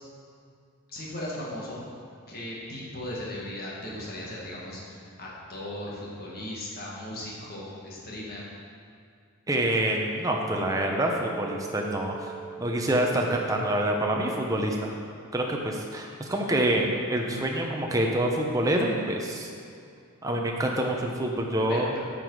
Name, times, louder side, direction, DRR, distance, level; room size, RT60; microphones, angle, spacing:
voice 1, 0.9-1.8 2.3-8.5 21.7-21.8, left 1 dB, 45° left, -5 dB, 1.8 m, -37 dB
voice 2, 9.5-12.3 12.6-14.9 15.3-19.5 20.2-21.9, right 1 dB, 15° right, 0 dB, 0.7 m, -26 dB
sound 1, 9.6-14.5, right 6 dB, 55° right, 1.4 m, -42 dB
8.7 x 6.2 x 4.8 m, 2.3 s
head